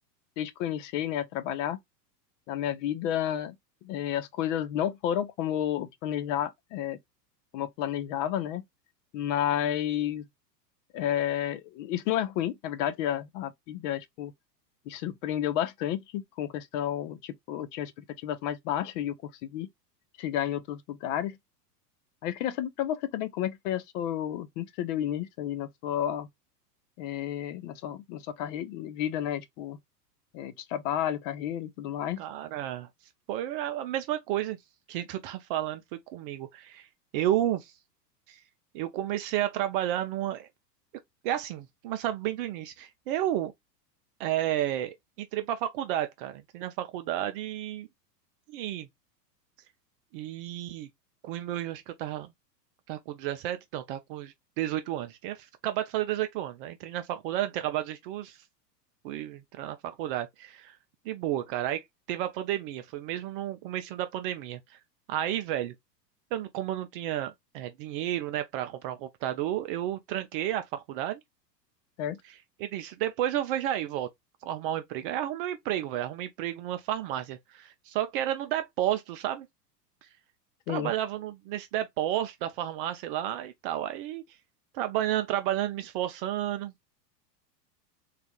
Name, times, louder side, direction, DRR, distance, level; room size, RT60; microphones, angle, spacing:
voice 1, 0.4-1.8 2.5-3.6 3.8-7.0 7.5-8.6 9.1-10.2 10.9-14.3 14.9-17.9 18.2-19.2 19.5-19.7 20.2-21.4 22.2-26.3 27.0-29.8 30.3-32.2 72.0-72.2 80.7-80.9, left 11 dB, 50° left, 0.7 m, -31 dB
voice 2, 32.2-32.9 33.3-34.6 34.9-36.9 37.1-37.7 38.3-38.4 38.7-40.5 41.2-43.5 44.2-47.9 48.5-48.9 50.1-50.9 51.2-52.3 52.9-58.4 59.0-60.8 61.1-61.8 62.1-64.6 65.1-65.7 66.3-71.2 72.2-74.1 74.4-79.5 80.7-84.2 84.7-86.7, right 12 dB, 35° right, 0.4 m, -32 dB
3.3 x 2.4 x 3.5 m
hypercardioid pair, 105°, 50 cm